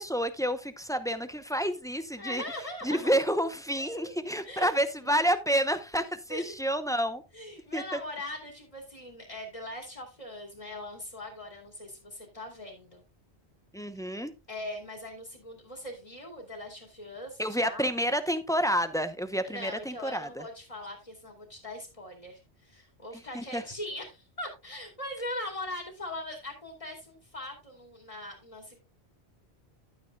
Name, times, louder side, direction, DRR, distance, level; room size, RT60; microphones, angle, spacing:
voice 1, 0.0-2.4 2.8-7.2 7.7-8.0 13.7-14.3 17.4-20.3 23.3-23.6, equal, 5° left, 10 dB, 0.6 m, -29 dB
voice 2, 2.2-3.1 3.8-4.1 4.4-4.7 5.0-5.1 6.3-6.5 7.3-13.0 14.5-17.9 19.4-28.8, left 1 dB, 30° left, 2 dB, 2.4 m, -41 dB
12.0 x 8.8 x 2.3 m, 0.26 s
omnidirectional pair, 1.1 m